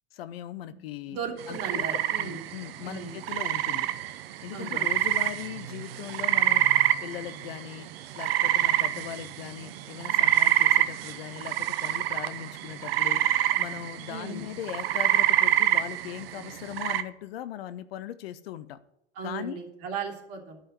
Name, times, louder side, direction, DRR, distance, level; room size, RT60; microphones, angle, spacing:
voice 1, 0.1-1.2 1.5-3.9 4.4-6.6 7.0-7.9 8.1-18.8 19.2-19.6, left 12 dB, 60° left, 14 dB, 0.7 m, -39 dB
voice 2, 1.1-2.4 2.8-3.2 4.5-4.8 14.1-14.4 19.1-20.6, right 6 dB, 45° right, 1 dB, 2.9 m, -36 dB
sound 1, 1.4-17.0, right 13 dB, 60° right, 0.8 m, -26 dB
11.5 x 5.6 x 7.9 m, 0.81 s
figure-of-eight pair, 85°, 34 cm